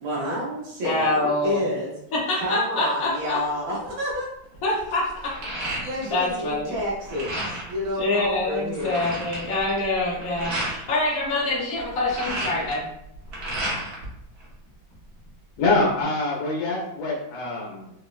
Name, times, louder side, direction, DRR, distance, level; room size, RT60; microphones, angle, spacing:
voice 1, 0.0-1.9 2.4-4.3 5.8-9.0, left 1 dB, 85° right, -5 dB, 1.5 m, -29 dB
voice 2, 0.8-1.6 2.1-3.4 4.6-5.3 5.8-6.8 8.0-12.8, left 2 dB, 60° left, -7 dB, 0.9 m, -25 dB
sound 1, 3.8-4.1 4.5-6.3 6.6-7.8 8.3-8.4 8.6-10.8 11.8-14.1 14.4-15.3, right 1 dB, 60° right, 1.3 m, -32 dB
voice 3, 15.6-17.9, left 2 dB, 90° left, -4 dB, 1.5 m, -24 dB
4.0 x 2.0 x 2.2 m, 0.79 s
omnidirectional pair, 2.1 m